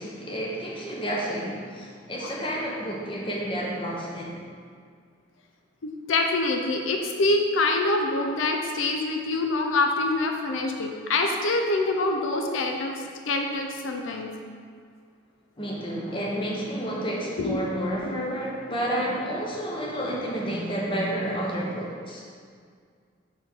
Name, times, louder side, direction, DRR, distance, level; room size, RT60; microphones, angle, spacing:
voice 1, 0.0-4.4 15.6-22.2, right 1 dB, 25° left, -4 dB, 0.9 m, -30 dB
voice 2, 5.8-12.9 13.3-14.3 17.4-17.6 18.0-18.2, left 2 dB, 90° left, 3 dB, 0.5 m, -25 dB
4.5 x 4.3 x 5.4 m, 2.1 s
head